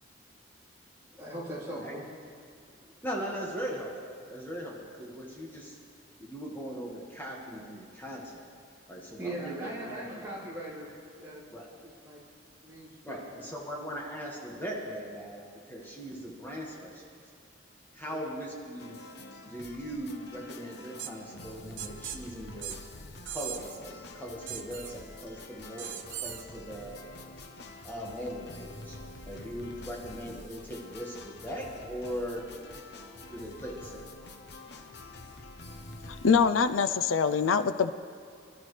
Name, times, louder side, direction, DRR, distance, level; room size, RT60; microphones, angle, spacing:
voice 1, 1.2-2.0 9.2-11.5 11.8-12.2 12.6-13.4 18.0-18.2, right 1 dB, 15° right, -7 dB, 3.4 m, -40 dB
voice 2, 3.0-4.0 4.3-5.8 6.2-8.5 8.9-10.0 11.5-11.7 13.0-17.0 17.9-19.0 19.4-22.8 23.3-27.0 27.8-29.0 29.2-32.5 32.7-32.8 33.3-34.1, equal, 10° left, -3 dB, 1.7 m, -39 dB
sound 1, 18.8-36.3, left 2 dB, 55° left, 1.0 m, -47 dB
sound 2, 21.0-21.1 21.8-22.2 22.6-22.8 23.3-23.8 24.5-24.9 25.8-26.4, right 10 dB, 70° right, 0.9 m, -38 dB
voice 3, 36.2-37.9, left 6 dB, 90° left, 10 dB, 0.5 m, -24 dB
25.5 x 12.5 x 3.3 m, 2.5 s
head